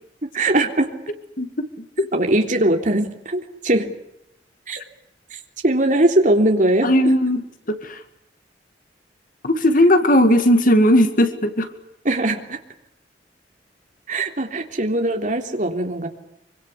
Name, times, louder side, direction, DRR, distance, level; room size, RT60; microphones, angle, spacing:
voice 1, 0.2-0.9 2.1-3.9 4.7-4.8 5.3-6.9 12.1-12.6 14.1-16.1, right 1 dB, 45° right, 4 dB, 3.5 m, -20 dB
voice 2, 1.4-2.1 6.8-8.0 9.4-11.7, left 1 dB, 50° left, 9 dB, 2.2 m, -17 dB
26.0 x 25.0 x 8.4 m, 0.79 s
head